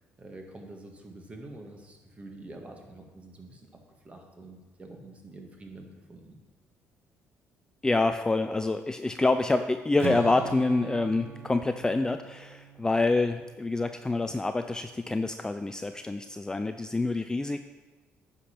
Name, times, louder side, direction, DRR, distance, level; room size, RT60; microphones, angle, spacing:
voice 1, 0.0-6.4, right 2 dB, 25° right, 2 dB, 1.7 m, -47 dB
voice 2, 7.8-17.6, left 2 dB, 15° left, 8 dB, 0.4 m, -27 dB
Strum, 10.0-14.1, right 7 dB, 55° right, 1.1 m, -41 dB
9.3 x 5.3 x 5.8 m, 1.2 s
cardioid pair, 90°, 5 cm